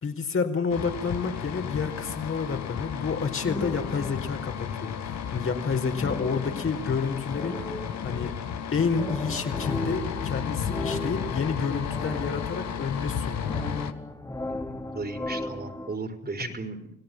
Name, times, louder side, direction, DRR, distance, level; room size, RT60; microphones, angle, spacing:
voice 1, 0.0-7.6 8.0-8.3 8.7-13.6 16.4-16.5, left 5 dB, 45° left, 4 dB, 4.7 m, -29 dB
sound 1, 0.7-13.9, left 8 dB, 65° left, 2.0 m, -33 dB
sound 2, 3.4-4.6 5.9-8.5 8.9-13.1 13.4-16.0, left 1 dB, 10° left, 3.0 m, -36 dB
voice 2, 14.5-16.9, right 3 dB, 30° right, 6 dB, 4.0 m, -36 dB
29.5 x 17.5 x 9.3 m, 0.75 s
cardioid pair, 90°, 30 cm